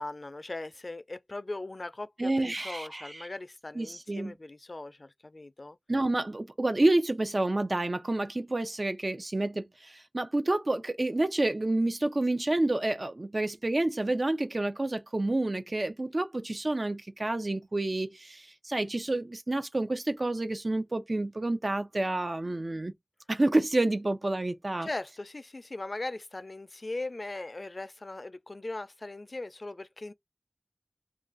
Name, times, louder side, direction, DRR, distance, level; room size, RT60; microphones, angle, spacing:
voice 1, 0.0-5.8 24.8-30.1, left 2 dB, 60° left, 0.4 m, -39 dB
voice 2, 2.2-3.3 3.8-4.3 5.9-22.9 23.3-24.9, right 2 dB, 60° right, 0.5 m, -29 dB
2.4 x 2.3 x 3.8 m
wide cardioid pair, 50°, 0 cm